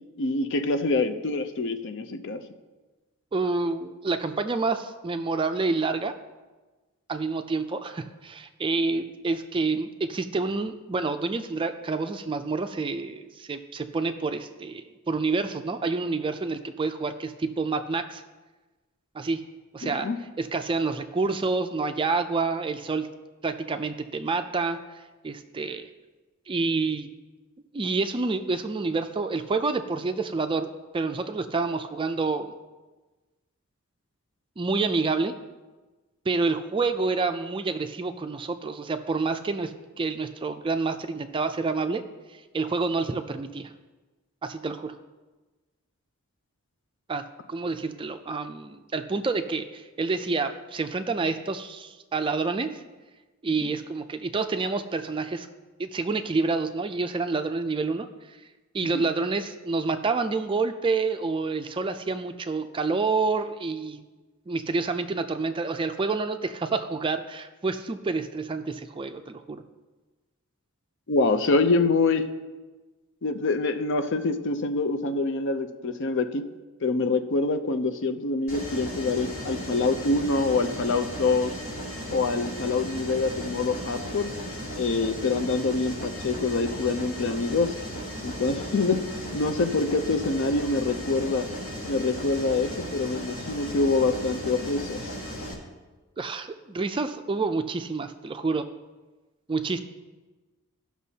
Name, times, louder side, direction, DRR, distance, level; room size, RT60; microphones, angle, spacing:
voice 1, 0.2-2.4 19.8-20.2 53.6-53.7 58.8-59.0 71.1-72.3 73.2-76.4 76.8-81.5 82.1-84.3 84.8-87.7 88.2-89.0 89.3-91.5 91.8-95.1, left 3 dB, 55° left, 9 dB, 0.5 m, -25 dB
voice 2, 3.3-6.1 7.1-18.2 19.1-19.4 19.7-20.1 20.4-23.1 23.4-25.9 26.5-27.1 27.7-30.7 30.9-32.5 34.6-35.3 36.3-42.0 42.5-43.7 44.4-44.9 47.1-47.2 47.5-52.7 53.4-55.5 55.8-58.4 58.7-64.0 64.5-69.6 96.2-98.7 99.5-99.8, right 3 dB, 25° right, 8 dB, 0.4 m, -28 dB
Mechanisms, 78.5-95.5, equal, 85° left, 2.5 m, -36 dB
15.5 x 6.0 x 2.8 m, 1.2 s
head